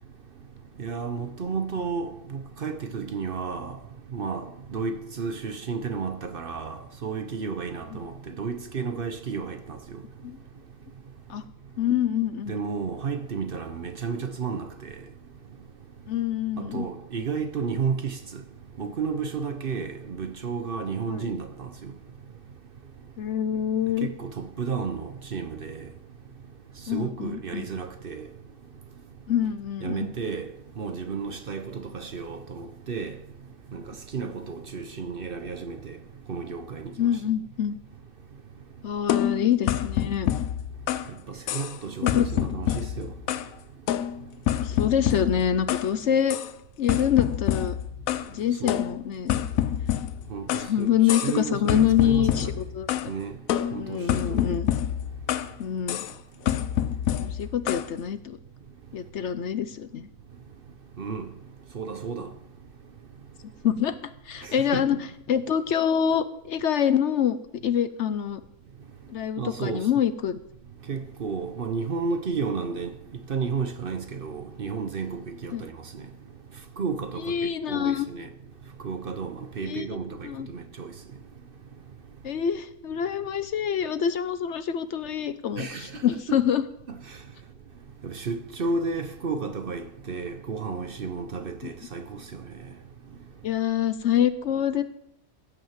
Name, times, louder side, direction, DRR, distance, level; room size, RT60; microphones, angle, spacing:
voice 1, 0.8-3.8 4.1-9.6 12.5-14.9 16.6-18.4 18.8-21.9 24.0-25.8 26.9-28.3 29.8-30.5 30.8-33.2 33.7-33.8 34.1-35.9 36.3-36.9 41.5-43.1 48.6-48.8 50.3-52.5 53.1-53.3 53.7-54.4 61.0-61.3 61.7-62.3 64.4-64.9 69.4-69.8 70.9-72.9 73.3-75.7 76.8-78.3 78.8-80.9 85.6-85.9 88.0-92.2, right 5 dB, 50° right, 0.9 m, -32 dB
voice 2, 11.8-12.5 16.1-16.8 21.1-21.3 23.2-24.1 26.9-27.7 29.3-30.1 37.0-37.8 38.8-40.3 42.0-42.3 44.6-46.4 46.8-47.8 48.3-49.3 50.7-52.9 53.8-54.7 55.6-56.1 57.2-58.4 58.9-60.1 63.6-63.9 64.3-65.0 65.3-67.4 67.6-68.4 69.1-70.4 75.5-75.7 77.2-78.1 79.6-79.9 80.2-80.5 82.2-86.6 91.6-91.7 93.4-94.8, left 9 dB, 65° left, 1.0 m, -26 dB
sound 1, 39.1-41.1 41.5-41.8 42.1-43.5 43.9-45.9 46.3-46.5 46.9-48.3 48.7-50.7 51.1-51.4 51.7-53.1 53.5-55.5 55.9-56.1 56.5-57.9, left 11 dB, 85° left, 1.1 m, -27 dB
15.5 x 6.0 x 7.3 m
omnidirectional pair, 1.4 m